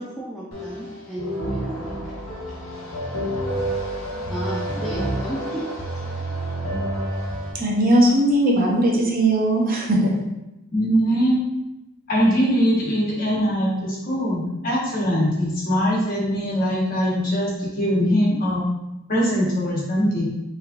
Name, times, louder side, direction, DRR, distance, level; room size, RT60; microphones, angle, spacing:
voice 1, 0.0-2.1 2.5-2.6 4.3-6.3, right 1 dB, ahead, -8 dB, 0.5 m, -34 dB
sound 1, 0.5-7.5, right 1 dB, 70° left, 1.0 m, -29 dB
voice 2, 7.5-10.1, right 1 dB, 40° right, -2 dB, 0.8 m, -19 dB
voice 3, 10.7-11.5 12.1-18.7 19.1-20.3, equal, 40° left, -6 dB, 1.4 m, -21 dB
5.4 x 3.2 x 2.6 m, 0.93 s
head